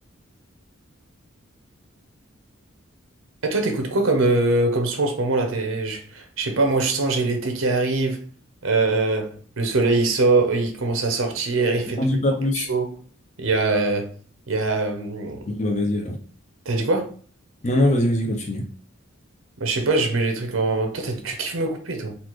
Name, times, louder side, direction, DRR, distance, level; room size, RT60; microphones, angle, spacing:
voice 1, 3.4-8.2 8.6-12.1 12.5-12.9 13.4-14.1 14.5-15.4 16.7-17.1 19.6-22.2, right 3 dB, 80° right, 0.7 m, -22 dB
voice 2, 12.0-12.7 15.5-16.1 17.6-18.6, left 1 dB, 35° left, 0.6 m, -22 dB
4.0 x 2.4 x 3.0 m
head